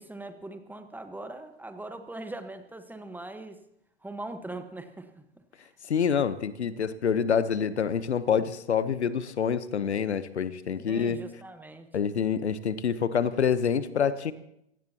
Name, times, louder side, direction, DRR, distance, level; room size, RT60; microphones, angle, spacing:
voice 1, 0.0-3.6 4.0-5.2 5.6-5.7 10.8-11.9, right 2 dB, 5° right, 8 dB, 1.3 m, -41 dB
voice 2, 5.9-11.2 11.9-14.3, left 7 dB, 80° left, 15 dB, 1.0 m, -27 dB
26.5 x 16.5 x 2.9 m, 0.77 s
figure-of-eight pair, 95°, 33 cm